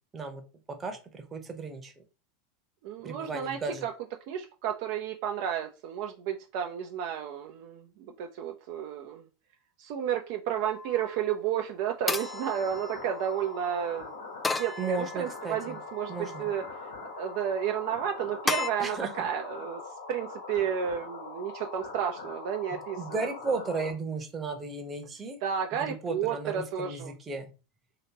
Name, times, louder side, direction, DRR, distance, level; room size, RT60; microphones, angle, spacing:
voice 1, 0.8-1.9 3.0-3.8 14.8-15.8 16.1-16.5 18.8-19.3 23.0-25.4 25.8-27.5, right 4 dB, 25° right, 0.8 m, -34 dB
voice 2, 2.8-3.9 4.3-9.2 9.8-14.2 14.6-19.8 20.1-23.6 25.4-27.1, right 9 dB, 55° right, 0.4 m, -32 dB
sound 1, 10.7-11.2 12.1-13.4 14.4-15.5 16.1-16.7 18.5-18.7, left 4 dB, 15° left, 0.3 m, -34 dB
sound 2, 12.1-23.9, left 4 dB, 75° left, 1.2 m, -42 dB
3.2 x 2.9 x 2.8 m
hypercardioid pair, 85°, 0 cm